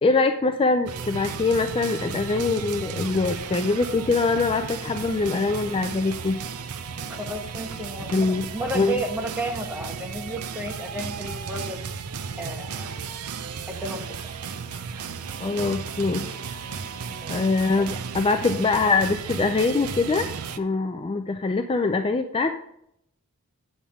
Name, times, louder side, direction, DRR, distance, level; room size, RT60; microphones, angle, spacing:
voice 1, 0.0-6.4 8.1-8.5 8.7-9.0 15.4-16.4 17.3-20.3 20.6-22.5, left 3 dB, 25° left, 7 dB, 0.4 m, -23 dB
sound 1, 0.9-20.6, right 6 dB, 80° right, 0.6 m, -34 dB
voice 2, 7.1-11.8 12.4-12.9 13.7-14.1 17.1-17.3, right 1 dB, 10° right, 2 dB, 1.1 m, -32 dB
8.4 x 7.3 x 3.5 m, 0.75 s
head